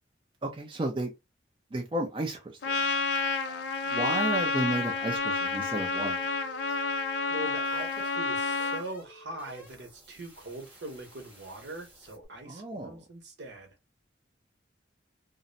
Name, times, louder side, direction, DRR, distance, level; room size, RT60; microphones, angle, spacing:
voice 1, 0.4-1.1 1.7-2.6 3.9-6.2 12.4-13.0, right 1 dB, 25° right, 0.4 m, -32 dB
Trumpet, 2.6-8.8, left 4 dB, 65° left, 0.4 m, -29 dB
sound 1, 5.2-12.3, right 1 dB, 10° right, 0.8 m, -53 dB
voice 2, 7.3-13.7, right 1 dB, 70° right, 0.8 m, -42 dB
2.5 x 2.0 x 2.5 m
head